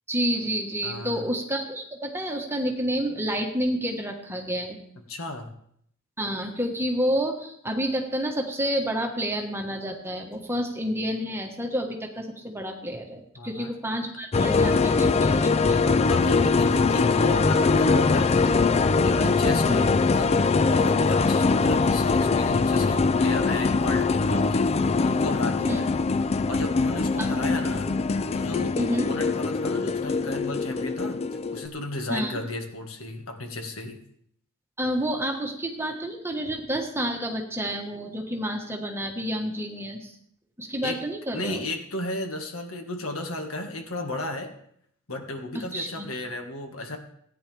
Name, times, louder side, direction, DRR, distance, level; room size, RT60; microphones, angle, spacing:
voice 1, 0.1-4.8 6.2-15.9 19.7-19.8 25.7-25.8 27.2-27.3 28.8-29.1 32.1-32.4 34.8-40.1 40.6-41.6 45.5-46.1, equal, 10° right, 2 dB, 1.4 m, -29 dB
voice 2, 0.8-1.2 5.1-5.5 13.4-13.7 15.6-24.7 25.0-25.9 26.5-27.9 28.3-31.2 31.5-34.0 40.8-41.0 41.3-44.5 45.1-47.0, left 2 dB, 75° left, 3 dB, 1.8 m, -34 dB
sound 1, 14.3-31.7, left 4 dB, 30° left, 0.4 m, -22 dB
17.0 x 9.8 x 3.4 m, 0.69 s
head